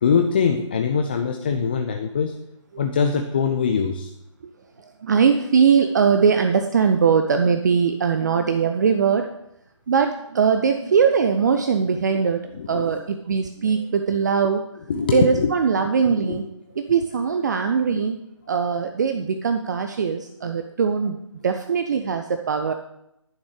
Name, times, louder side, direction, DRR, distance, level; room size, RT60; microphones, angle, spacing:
voice 1, 0.0-2.4 2.8-4.1 12.1-12.2 12.5-13.0 13.3-13.4 14.9-15.5 16.1-16.4, left 6 dB, 20° left, 5 dB, 0.4 m, -23 dB
voice 2, 4.8-9.3 9.9-12.4 12.7-14.6 15.1-16.4 16.8-18.2 18.5-21.2 21.4-22.7, right 6 dB, 35° right, 6 dB, 0.6 m, -21 dB
10.5 x 6.1 x 6.5 m, 0.81 s
figure-of-eight pair, 145°, 17 cm